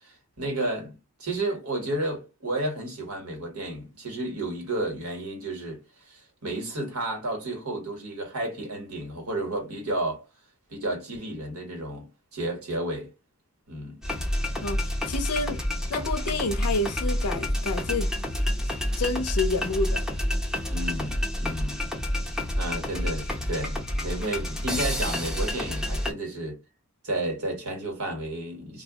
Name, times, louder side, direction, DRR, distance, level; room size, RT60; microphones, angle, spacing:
voice 1, 0.0-5.8 6.1-10.2 10.7-12.1 12.3-13.1 13.7-14.0 20.7-21.8 22.6-23.8 24.0-26.6 27.0-28.8, right 1 dB, 80° right, 1.3 m, -32 dB
sound 1, 14.0-26.1, left 1 dB, 5° right, 0.6 m, -28 dB
voice 2, 14.6-15.6 15.9-18.1 19.0-20.0, left 3 dB, 90° left, 0.5 m, -29 dB
2.3 x 2.1 x 3.5 m
head